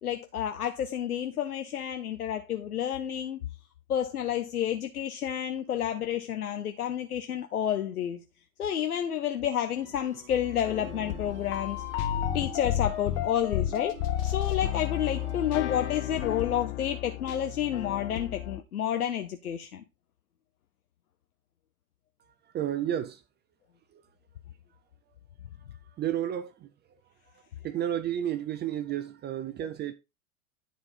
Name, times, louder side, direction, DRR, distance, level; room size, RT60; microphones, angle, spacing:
voice 1, 0.0-3.4 3.9-8.2 8.6-11.8 12.3-14.0 14.2-19.8, left 10 dB, 85° left, 0.9 m, -30 dB
sound 1, 9.8-16.4, right 4 dB, 45° right, 5.7 m, -48 dB
sound 2, 10.3-18.6, left 12 dB, 55° left, 1.3 m, -32 dB
voice 2, 22.5-23.2 23.9-24.0 26.0-26.7 27.6-29.9, right 11 dB, 25° right, 0.6 m, -31 dB
10.5 x 4.3 x 4.2 m
hypercardioid pair, 95°, 44 cm